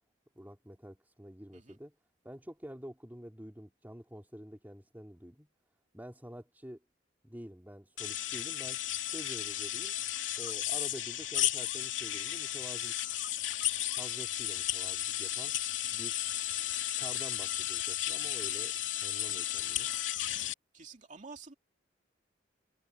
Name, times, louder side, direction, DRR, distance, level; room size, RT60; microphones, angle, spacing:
voice 1, 0.3-1.9 2.2-5.5 5.9-6.8 7.2-10.0 10.4-12.9 13.9-15.6 15.9-16.2 16.8-18.7 19.0-19.9, equal, 10° right, 2.8 m, -48 dB
sound 1, 8.0-20.5, left 13 dB, 90° left, 2.6 m, -34 dB
voice 2, 20.7-21.5, right 4 dB, 40° right, 2.7 m, -49 dB
head